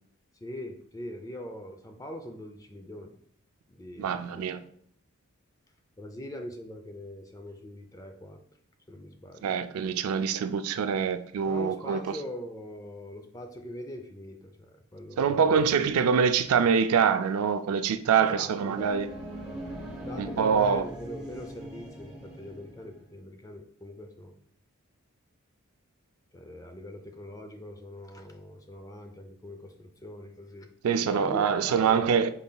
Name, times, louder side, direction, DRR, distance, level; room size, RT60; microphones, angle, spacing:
voice 1, 0.4-3.1 3.7-4.5 6.0-8.4 8.9-9.5 11.5-15.6 18.2-19.0 20.1-24.4 26.3-30.7 31.1-32.1, left 1 dB, 15° left, 0.4 m, -42 dB
voice 2, 4.0-4.6 9.4-12.0 15.2-19.1 20.2-20.8 30.8-32.3, right 6 dB, 80° right, 0.4 m, -25 dB
sound 1, 18.4-23.0, right 1 dB, 5° right, 1.0 m, -41 dB
5.4 x 3.8 x 2.3 m
head